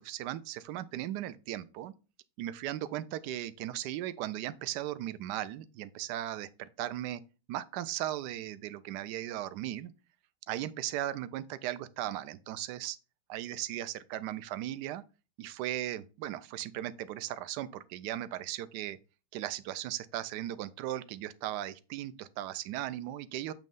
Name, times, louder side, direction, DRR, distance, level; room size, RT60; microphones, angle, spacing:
voice 1, 0.0-1.9 2.4-7.2 7.5-9.9 10.5-13.0 13.3-15.0 15.4-19.0 19.3-23.5, right 13 dB, 75° right, 1.1 m, -37 dB
7.7 x 3.1 x 5.3 m
omnidirectional pair, 2.0 m